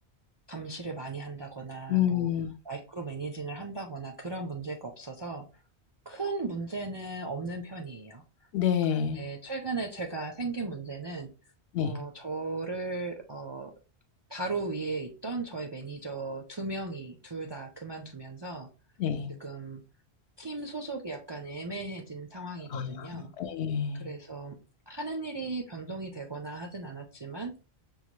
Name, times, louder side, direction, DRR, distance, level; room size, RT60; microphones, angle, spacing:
voice 1, 0.5-2.3 2.7-5.4 6.1-8.2 8.9-11.3 11.8-13.7 14.3-18.7 19.4-19.8 20.4-23.3 23.9-24.6 24.9-27.5, right 3 dB, 45° right, 0.3 m, -37 dB
voice 2, 1.9-2.5 8.5-9.2 11.7-12.0 19.0-19.3 22.7-24.0, left 9 dB, 75° left, 0.9 m, -28 dB
5.4 x 2.2 x 3.0 m
omnidirectional pair, 1.1 m